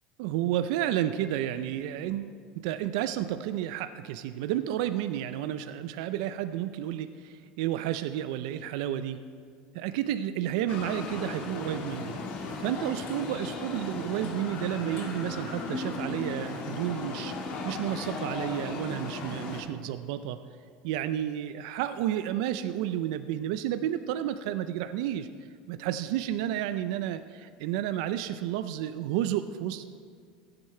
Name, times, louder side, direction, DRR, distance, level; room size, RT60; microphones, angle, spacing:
voice 1, 0.2-9.2 9.7-12.2 12.6-17.3 17.6-20.4 20.8-25.3 25.7-29.8, right 11 dB, 75° right, 11 dB, 0.4 m, -31 dB
sound 1, 10.7-19.6, left 3 dB, 55° left, 1.6 m, -36 dB
15.0 x 7.9 x 4.4 m, 2.1 s
supercardioid pair, 140°, 3 cm